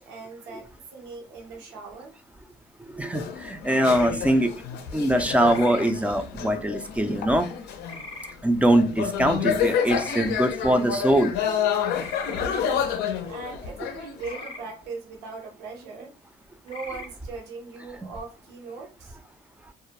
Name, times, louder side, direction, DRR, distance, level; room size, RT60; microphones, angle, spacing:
voice 1, 0.0-2.1 12.3-16.2 16.6-19.2, right 4 dB, 85° right, 0 dB, 0.7 m, -40 dB
voice 2, 2.9-4.5 4.9-7.5 8.4-11.3, right 1 dB, 10° right, 7 dB, 0.3 m, -22 dB
sound 1, 3.1-8.1 8.6-14.6, left 8 dB, 80° left, 0.5 m, -29 dB
sound 2, 3.6-4.1 5.5-5.9 7.8-8.3 9.8-10.2 12.0-12.4 14.2-14.6 16.6-17.1, left 3 dB, 30° left, 0.6 m, -40 dB
2.3 x 2.1 x 2.7 m, 0.31 s
cardioid pair, 110°, 17 cm